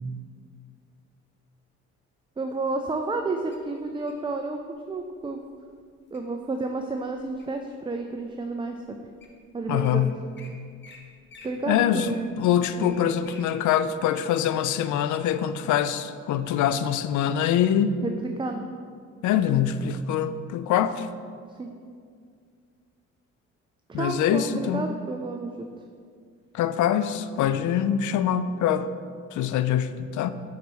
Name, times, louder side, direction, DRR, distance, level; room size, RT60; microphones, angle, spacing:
voice 1, 2.4-5.4 6.1-9.0 9.5-10.1 11.4-12.3 12.8-13.0 18.0-18.6 21.6-21.7 23.9-25.7, right 3 dB, 15° right, 4 dB, 0.4 m, -31 dB
Wild animals, 3.5-4.3 5.0-5.3 5.7-6.2 6.7-7.7 8.2-8.3 8.9-9.0 9.2-9.4 9.6-9.9 10.4-10.5 10.8-11.0 11.3-13.5 13.9-14.0, left 4 dB, 40° left, 1.1 m, -50 dB
voice 2, 9.7-10.2 11.7-18.0 19.2-21.1 23.9-24.9 26.5-28.9 29.3-30.3, left 9 dB, 75° left, 12 dB, 0.4 m, -24 dB
5.8 x 4.1 x 6.2 m, 2.2 s
cardioid pair, 90°, 30 cm